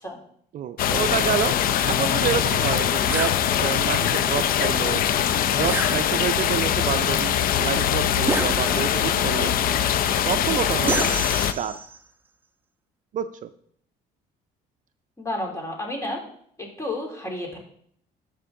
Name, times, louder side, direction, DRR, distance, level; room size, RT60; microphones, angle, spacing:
voice 1, 0.5-1.5 1.8-5.0 5.5-9.5 10.3-11.2 11.5-11.7 13.1-13.5, right 10 dB, 50° right, 11 dB, 0.4 m, -28 dB
sound 1, 0.8-11.5, left 10 dB, 60° left, 0.6 m, -22 dB
sound 2, 3.1-3.4 5.7-6.5 8.3-9.1 10.9-12.0, right 3 dB, 10° right, 0.9 m, -29 dB
voice 2, 15.2-16.2 16.6-17.6, left 1 dB, 15° left, 1 dB, 2.8 m, -31 dB
12.5 x 5.3 x 3.7 m, 0.64 s
cardioid pair, 110°, 17 cm